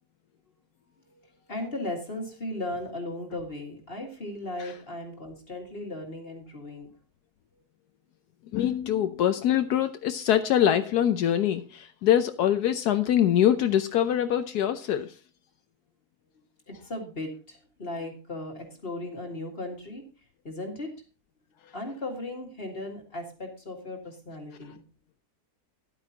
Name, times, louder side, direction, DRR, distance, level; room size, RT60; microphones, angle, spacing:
voice 1, 1.1-6.9 16.7-20.0 20.4-20.9 21.7-24.8, left 2 dB, 35° left, 2 dB, 2.1 m, -37 dB
voice 2, 8.5-15.2, left 10 dB, 75° left, 9 dB, 1.2 m, -24 dB
13.0 x 10.5 x 2.8 m, 0.35 s
omnidirectional pair, 1.7 m